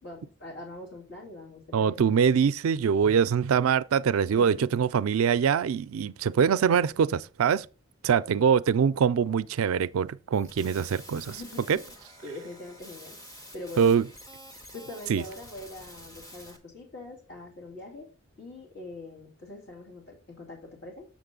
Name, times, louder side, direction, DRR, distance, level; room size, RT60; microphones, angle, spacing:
voice 1, 0.0-2.2 4.3-4.7 11.3-12.0 12.2-13.2 13.5-14.0 14.7-18.1 18.4-21.1, left 2 dB, 50° left, 2.6 m, -43 dB
voice 2, 1.7-7.7 8.0-11.3 11.7-11.8 13.8-14.1 15.1-15.2, right 7 dB, 85° right, 0.4 m, -23 dB
sound 1, 10.3-16.6, equal, 15° left, 1.2 m, -48 dB
7.4 x 6.6 x 3.8 m
head